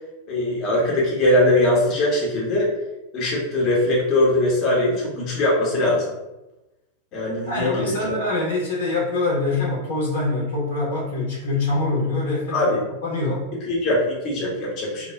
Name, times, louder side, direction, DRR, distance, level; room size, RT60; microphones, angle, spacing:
voice 1, 0.3-2.7 3.1-6.1 7.1-8.1 12.5-12.8 13.7-15.1, left 1 dB, 35° left, -4 dB, 0.8 m, -21 dB
voice 2, 7.4-12.7 13.0-13.4 14.4-14.8, left 2 dB, 65° left, -4 dB, 0.9 m, -24 dB
2.2 x 2.0 x 3.5 m, 0.99 s
figure-of-eight pair, 90°, 0 cm